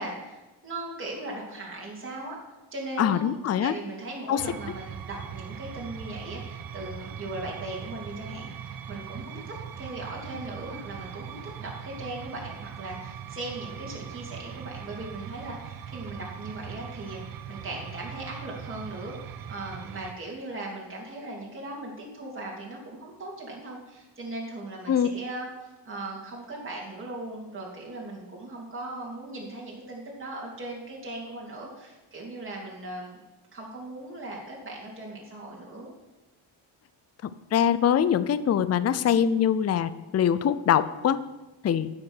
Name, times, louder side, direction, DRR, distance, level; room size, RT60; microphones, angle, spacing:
voice 1, 0.0-2.4 2.7-3.4 3.6-25.5 25.8-33.2 33.5-35.9, right 2 dB, 25° right, -3 dB, 3.0 m, -38 dB
voice 2, 3.0-3.7 4.3-4.4 24.9-25.1 37.2-41.2 41.6-41.9, left 9 dB, 35° left, 14 dB, 0.5 m, -23 dB
sound 1, 4.4-20.1, right 8 dB, 45° right, 0.7 m, -40 dB
9.7 x 7.4 x 6.3 m, 1.1 s
cardioid pair, 105°, 49 cm